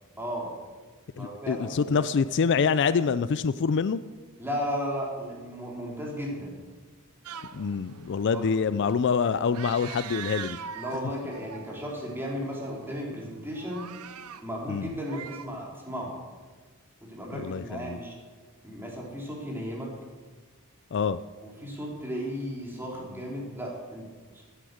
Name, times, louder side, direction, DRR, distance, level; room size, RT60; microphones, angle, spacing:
voice 1, 0.2-0.5 1.2-2.0 4.4-6.5 8.3-8.5 10.7-13.9 14.4-16.1 17.0-18.2 18.6-19.9 21.4-24.1 24.3-24.4, equal, 10° right, -3 dB, 3.7 m, -35 dB
voice 2, 1.2-4.0 7.5-10.6 14.7-14.9 17.3-18.0 20.9-21.2, left 5 dB, 55° left, 15 dB, 0.4 m, -26 dB
sound 1, 7.2-15.5, right 8 dB, 80° right, 0.7 m, -43 dB
15.0 x 10.0 x 6.4 m, 1.4 s
head